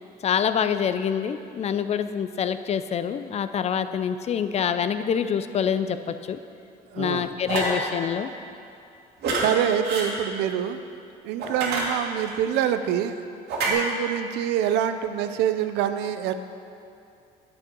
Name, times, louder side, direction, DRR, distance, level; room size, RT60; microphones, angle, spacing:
voice 1, 0.2-6.4 7.0-8.3, left 8 dB, 40° left, 11 dB, 0.4 m, -26 dB
voice 2, 6.9-7.3 9.3-10.8 11.2-13.2 13.6-16.3, right 10 dB, 90° right, 10 dB, 0.5 m, -25 dB
sound 1, 7.5-7.8 9.2-9.5 9.8-10.1 11.4-12.3 13.5-13.7, right 3 dB, 75° right, 1.9 m, -26 dB
8.9 x 7.1 x 5.3 m, 2.6 s
cardioid pair, 110°, 17 cm